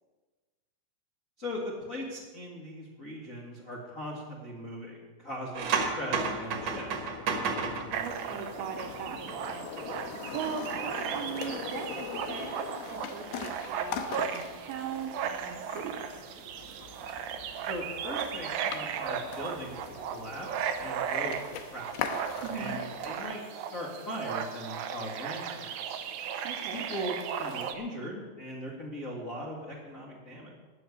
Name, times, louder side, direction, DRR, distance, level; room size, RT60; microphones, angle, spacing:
voice 1, 1.4-7.1 17.6-19.8 20.1-21.9 22.5-26.0 26.7-30.5, equal, 45° left, -3 dB, 1.0 m, -39 dB
sound 1, 5.5-9.4 9.6-9.9, right 4 dB, 55° right, 2.0 m, -32 dB
sound 2, 6.1-23.2, left 7 dB, 75° left, 2.8 m, -42 dB
sound 3, 7.9-27.7, right 7 dB, 90° right, 1.7 m, -36 dB
voice 2, 8.0-9.7 10.0-12.5 12.8-16.1 22.4-22.8 26.4-26.8, right 7 dB, 75° right, 5 dB, 2.7 m, -39 dB
14.5 x 6.5 x 9.9 m, 1.4 s
omnidirectional pair, 4.9 m